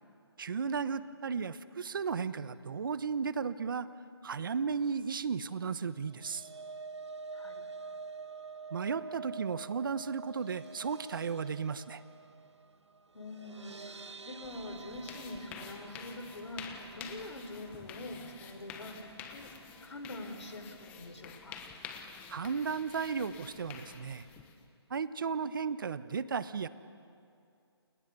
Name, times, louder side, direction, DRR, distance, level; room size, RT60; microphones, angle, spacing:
voice 1, 0.4-3.9 4.2-6.5 8.7-12.0 22.3-24.3 24.9-26.7, right 6 dB, 50° right, 14 dB, 1.1 m, -34 dB
sound 1, 5.9-20.1 20.4-20.7 21.0-21.1, right 4 dB, 80° right, 1.2 m, -48 dB
voice 2, 7.3-7.7 13.1-19.5 19.8-21.6, left 1 dB, 85° left, 7 dB, 3.9 m, -45 dB
sound 2, 14.4-24.7, left 6 dB, 10° left, 1.1 m, -49 dB
29.5 x 27.0 x 6.9 m, 2.5 s
hypercardioid pair, 165°, 15 cm